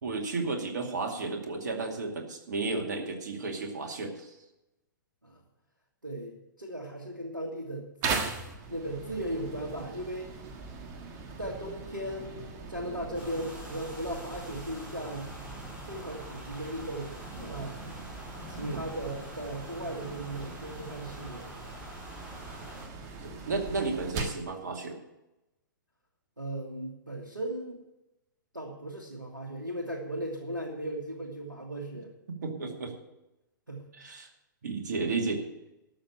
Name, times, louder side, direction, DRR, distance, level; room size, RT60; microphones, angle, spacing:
voice 1, 0.0-4.3 18.6-18.8 23.2-25.0 32.4-32.9 34.0-34.3 34.6-35.5, right 3 dB, 55° right, 3 dB, 2.3 m, -33 dB
voice 2, 6.0-7.9 8.7-10.4 11.4-15.3 15.9-17.8 18.5-21.6 26.4-27.8 28.5-32.1 33.7-33.8, right 1 dB, 85° right, -1 dB, 1.9 m, -37 dB
sound 1, 8.0-24.5, right 4 dB, 30° right, 1.5 m, -40 dB
sound 2, 13.1-22.9, equal, 10° right, 3.8 m, -46 dB
12.5 x 6.8 x 8.7 m, 0.93 s
figure-of-eight pair, 115°, 11 cm